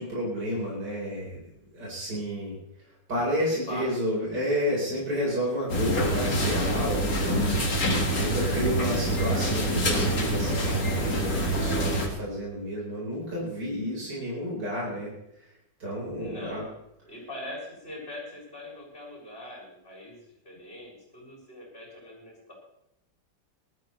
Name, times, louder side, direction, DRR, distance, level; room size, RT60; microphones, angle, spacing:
voice 1, 0.0-1.4 1.7-2.6 3.1-15.1 15.8-16.6, equal, 65° right, -5 dB, 5.5 m, -31 dB
voice 2, 3.3-3.9 16.2-16.8 17.1-22.5, left 1 dB, 30° left, -3 dB, 7.3 m, -42 dB
sound 1, 5.7-12.1, right 1 dB, 50° left, 2.6 m, -26 dB
19.5 x 13.5 x 3.3 m, 0.81 s
omnidirectional pair, 2.0 m